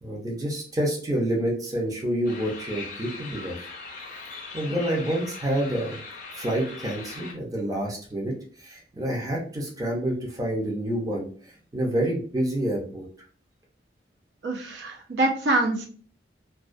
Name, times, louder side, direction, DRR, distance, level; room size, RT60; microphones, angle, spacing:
voice 1, 0.0-3.6 4.5-6.0 6.4-11.3 11.7-13.0, right 1 dB, 20° right, -2 dB, 0.6 m, -28 dB
sound 1, 2.2-7.3, left 4 dB, 50° left, 0.5 m, -40 dB
voice 2, 14.4-15.9, right 2 dB, 70° right, 1 dB, 0.5 m, -25 dB
2.3 x 2.2 x 2.5 m, 0.44 s
head